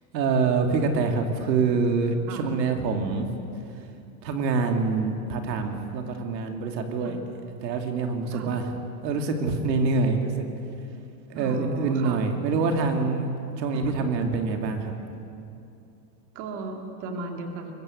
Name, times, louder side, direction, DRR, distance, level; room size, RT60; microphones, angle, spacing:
voice 1, 0.1-3.3 3.8-3.9 4.2-7.2 7.6-8.7 9.0-10.5 11.3-14.9, right 4 dB, 90° right, 4 dB, 2.9 m, -25 dB
voice 2, 11.4-12.2 13.7-13.9 16.3-17.7, right 3 dB, 35° right, 3 dB, 2.3 m, -36 dB
22.5 x 20.5 x 8.2 m, 2.6 s
supercardioid pair, 165°, 49 cm